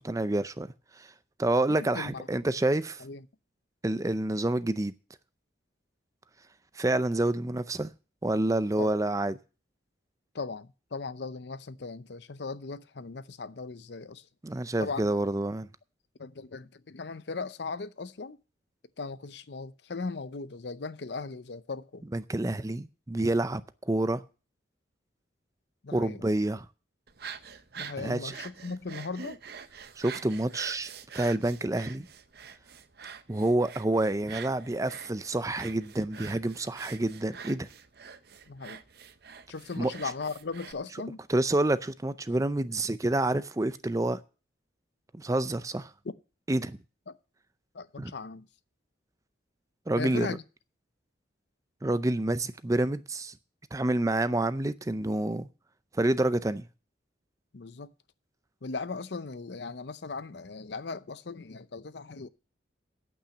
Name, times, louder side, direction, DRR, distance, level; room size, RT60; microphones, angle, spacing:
voice 1, 0.0-1.1 1.4-3.0 3.8-4.9 6.8-7.9 8.2-9.4 14.4-15.7 22.1-24.2 25.9-26.7 28.0-28.3 30.0-32.1 33.3-37.7 39.8-39.9 41.3-44.2 45.1-45.9 46.5-46.8 48.0-48.1 49.9-50.4 51.8-53.3 53.7-55.5 56.0-56.6, right 1 dB, 15° right, 0.5 m, -28 dB
voice 2, 1.7-2.3 3.0-3.2 8.8-8.9 10.3-14.2 14.8-15.1 16.2-18.4 19.0-22.0 25.8-26.2 27.8-29.4 38.5-38.8 39.5-41.2 47.1-47.2 47.7-48.5 50.0-50.4 57.5-57.9 58.6-62.3, left 4 dB, 60° left, 0.6 m, -38 dB
sound 1, 27.1-40.7, right 6 dB, 55° right, 0.8 m, -45 dB
8.8 x 8.7 x 7.1 m
head